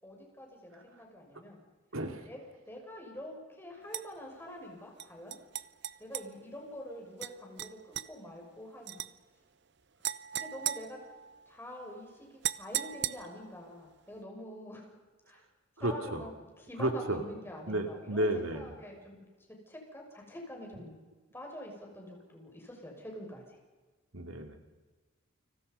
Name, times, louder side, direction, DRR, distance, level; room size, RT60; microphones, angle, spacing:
voice 1, 0.0-1.6 2.2-2.4 2.7-5.3 6.0-9.0 10.3-11.0 11.5-12.3 12.6-14.9 15.3-15.4 15.8-16.3 16.7-19.2 19.7-21.0 21.3-23.4, left 1 dB, 10° left, 0 dB, 6.7 m, -46 dB
voice 2, 1.9-2.3 15.8-16.3 16.8-17.2 17.7-18.7 24.1-24.6, right 1 dB, 80° right, 5 dB, 2.6 m, -32 dB
sound 1, 3.9-4.1 5.0-6.3 7.2-7.3 7.6-8.1 8.9-9.1 10.0-11.5 12.4-13.5, right 11 dB, 55° right, 0.8 m, -37 dB
30.0 x 25.5 x 5.6 m, 1.3 s
head